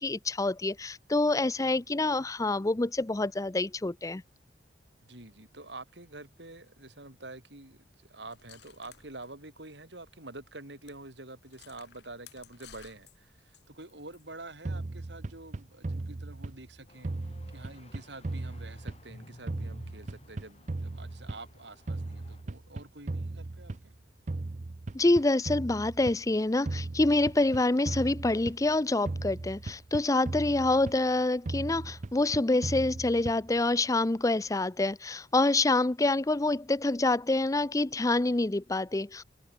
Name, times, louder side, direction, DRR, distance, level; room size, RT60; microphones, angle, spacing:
voice 1, 0.0-4.2 24.9-39.2, left 2 dB, 20° left, 0.5 m, -27 dB
voice 2, 5.0-23.9, right 2 dB, 80° right, 7.6 m, -47 dB
sound 1, 8.3-10.1 10.4-10.5 10.8-11.0 11.4-14.2, left 8 dB, 70° left, 2.4 m, -56 dB
sound 2, 14.7-16.7 17.0-19.2 19.5-21.6 21.9-24.0 24.3-26.3 26.7-28.8 29.1-31.2 31.5-33.6, right 2 dB, 45° right, 0.6 m, -37 dB
sound 3, 16.9-22.4, left 1 dB, 35° left, 2.2 m, -54 dB
head